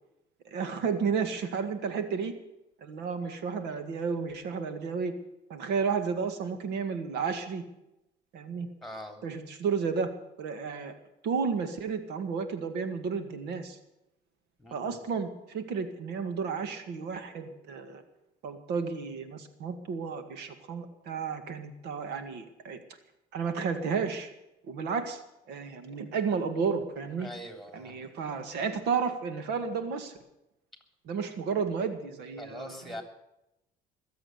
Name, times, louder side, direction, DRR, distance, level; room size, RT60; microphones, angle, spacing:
voice 1, 0.5-2.3 2.8-5.1 5.5-7.6 8.3-8.7 9.2-10.1 10.4-10.9 11.2-13.8 14.7-18.0 18.4-22.8 23.3-24.3 24.7-25.2 25.5-27.3 27.7-30.1 31.1-32.8, right 5 dB, 85° right, 9 dB, 1.9 m, -32 dB
voice 2, 8.8-9.2 14.6-15.0 27.2-28.0 32.4-33.0, left 1 dB, ahead, 6 dB, 3.4 m, -42 dB
21.5 x 7.8 x 8.0 m, 0.88 s
cardioid pair, 110°, 17 cm